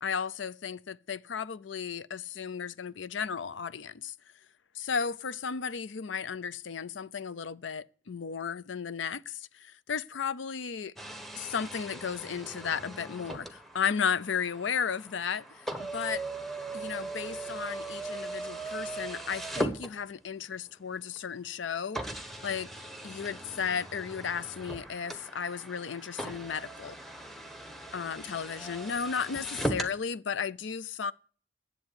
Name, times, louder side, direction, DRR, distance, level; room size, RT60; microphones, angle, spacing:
voice 1, 0.0-4.1 4.7-10.9 11.3-16.2 16.7-22.0 22.4-22.7 23.0-27.0 27.9-31.1, left 6 dB, 85° left, 0.5 m, -34 dB
sound 1, 11.0-20.4 21.2-21.3 21.9-30.0, right 1 dB, ahead, 1.0 m, -39 dB
10.5 x 7.8 x 9.5 m
head